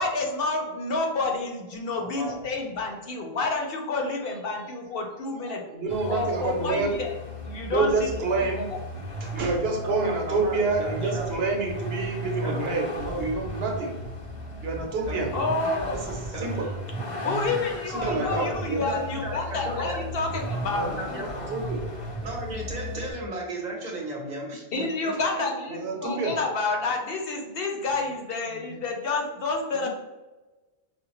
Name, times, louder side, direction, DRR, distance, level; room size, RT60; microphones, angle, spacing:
voice 1, 0.0-5.6 6.1-7.1 7.4-8.2 8.6-8.8 15.3-16.0 17.2-21.2 24.7-29.9, left 3 dB, 65° left, 2 dB, 0.8 m, -29 dB
voice 2, 5.4-7.0 7.6-8.6 9.2-13.9 14.6-15.3 15.9-16.8 17.9-18.8 20.7-21.0 21.5-21.8 25.7-26.4 28.5-28.8 29.7-29.9, right 3 dB, 75° right, 1 dB, 0.9 m, -28 dB
Vehicle, 5.9-23.1, equal, 35° left, 0.7 m, -35 dB
voice 3, 9.8-11.3 12.4-12.8 15.1-15.4 16.3-16.6 18.0-20.0 20.9-21.3 22.2-25.5, right 1 dB, 45° right, -1 dB, 0.9 m, -35 dB
5.0 x 2.0 x 2.9 m, 1.1 s
omnidirectional pair, 1.1 m